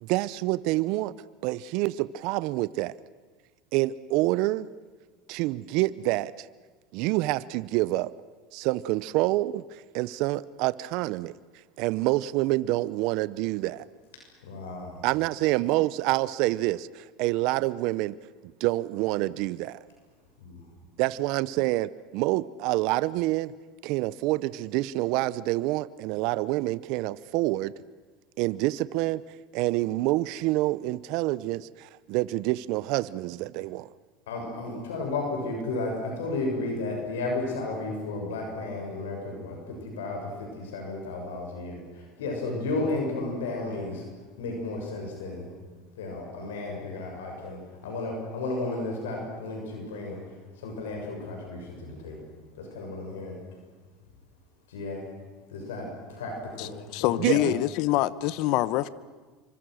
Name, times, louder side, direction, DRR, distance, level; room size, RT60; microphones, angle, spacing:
voice 1, 0.0-1.1 1.4-2.9 3.7-4.7 5.3-6.5 6.9-8.1 8.5-9.6 9.9-11.3 11.8-13.9 15.0-18.2 18.6-19.8 21.0-23.5 23.8-27.7 28.4-29.2 29.5-33.9 57.2-57.5, right 18 dB, 65° right, 0.7 m, -27 dB
voice 2, 14.4-15.0 20.4-20.6 34.3-41.8 42.2-44.0 44.4-45.5 46.0-50.2 50.6-52.2 52.6-53.4 54.7-55.0 55.5-56.7 57.0-57.5, left 2 dB, 90° left, 6.7 m, -33 dB
voice 3, 56.6-58.9, left 16 dB, 65° left, 1.0 m, -26 dB
27.5 x 24.5 x 6.4 m
supercardioid pair, 100°, 0 cm